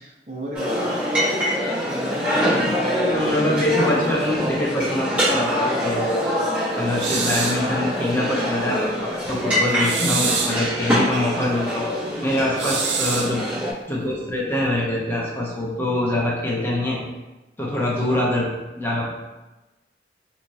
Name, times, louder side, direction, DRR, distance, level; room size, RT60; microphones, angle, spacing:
voice 1, 0.0-1.4 4.1-4.2 13.0-13.5 18.1-18.3, equal, 35° right, -3 dB, 0.7 m, -35 dB
sound 1, 0.5-13.7, equal, 10° right, 1.0 m, -24 dB
voice 2, 3.0-6.2 6.8-11.9 12.2-13.4 13.9-17.0 17.6-18.5 18.8-19.1, left 1 dB, 15° left, -4 dB, 0.5 m, -24 dB
sound 2, 7.0-7.7 9.8-10.6 12.6-13.4, right 4 dB, 80° right, 0.5 m, -25 dB
3.5 x 3.0 x 2.6 m, 1.1 s
head